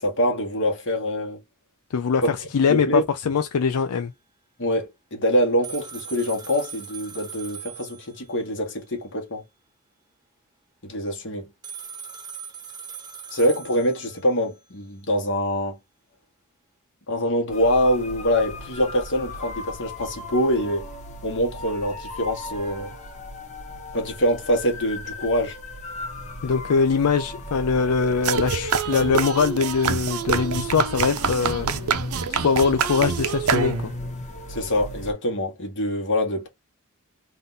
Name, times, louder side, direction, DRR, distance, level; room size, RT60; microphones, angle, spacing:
voice 1, 0.0-1.4 2.2-2.3 2.7-3.0 4.6-9.4 10.8-11.5 13.3-15.8 17.1-20.9 21.2-22.9 23.9-25.5 34.5-36.5, equal, 60° left, 1.6 m, -24 dB
voice 2, 1.9-4.1 26.4-31.7 32.3-33.9, left 5 dB, 80° left, 0.4 m, -22 dB
sound 1, 5.6-8.5 11.6-14.6, right 7 dB, 20° right, 0.8 m, -40 dB
sound 2, 17.5-35.1, left 1 dB, 35° left, 1.2 m, -38 dB
sound 3, 28.2-34.1, right 5 dB, 80° right, 0.7 m, -26 dB
3.6 x 2.6 x 3.8 m
head